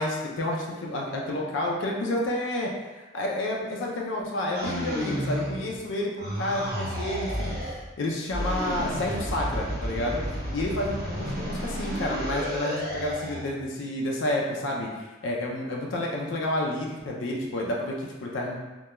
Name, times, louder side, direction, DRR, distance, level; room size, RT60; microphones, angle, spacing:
voice 1, 0.0-2.7 3.0-7.6 8.0-10.2 10.5-18.6, left 1 dB, 75° left, -1 dB, 0.4 m, -30 dB
sound 1, 4.5-5.9 6.2-7.8 8.3-13.5, equal, 50° right, 0.9 m, -32 dB
2.2 x 2.2 x 2.9 m, 1.2 s
head